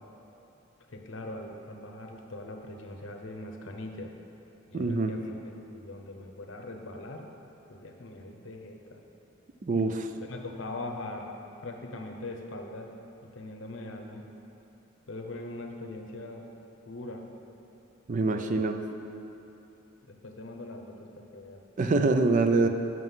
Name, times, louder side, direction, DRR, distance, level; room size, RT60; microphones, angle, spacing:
voice 1, 0.9-4.1 4.7-5.3 5.7-7.3 7.7-9.0 10.2-11.3 11.6-12.9 13.2-14.2 15.1-16.5 16.9-17.3 18.4-18.6 20.1-21.6, left 2 dB, 70° left, 3 dB, 0.8 m, -41 dB
voice 2, 4.7-5.2 9.6-10.1 18.1-18.8 21.8-22.7, right 3 dB, 40° right, 6 dB, 0.4 m, -25 dB
7.7 x 6.2 x 5.6 m, 2.9 s
head